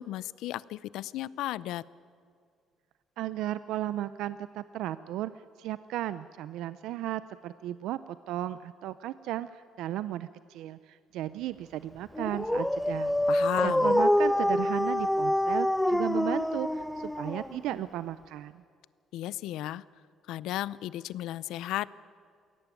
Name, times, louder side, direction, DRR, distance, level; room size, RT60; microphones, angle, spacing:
voice 1, 0.0-1.8 13.3-14.0 19.1-19.8 20.3-22.0, left 14 dB, 85° left, 20 dB, 0.5 m, -34 dB
voice 2, 3.2-5.3 5.6-8.0 8.3-13.1 13.6-18.6, right 13 dB, 85° right, 14 dB, 0.5 m, -35 dB
Dog, 12.2-17.8, left 1 dB, 5° left, 0.5 m, -26 dB
22.0 x 17.0 x 9.1 m, 2.2 s
cardioid pair, 160°, 0 cm